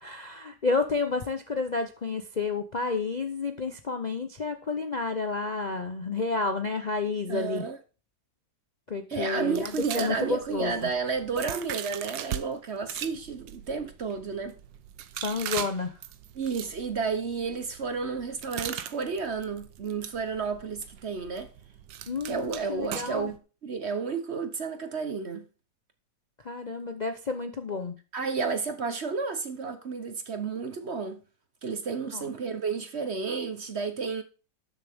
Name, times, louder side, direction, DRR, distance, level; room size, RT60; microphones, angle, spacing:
voice 1, 0.0-7.7 8.9-10.9 15.2-15.9 22.1-23.3 26.4-28.0 32.1-32.2, left 4 dB, 85° left, 0.3 m, -30 dB
voice 2, 7.3-7.8 9.1-14.5 16.4-21.5 22.3-25.4 28.1-31.2 31.6-34.2, right 5 dB, 45° right, 1.0 m, -32 dB
sound 1, 9.6-12.4 12.8-23.4, right 11 dB, 75° right, 1.4 m, -40 dB
12.0 x 7.1 x 3.6 m
omnidirectional pair, 2.1 m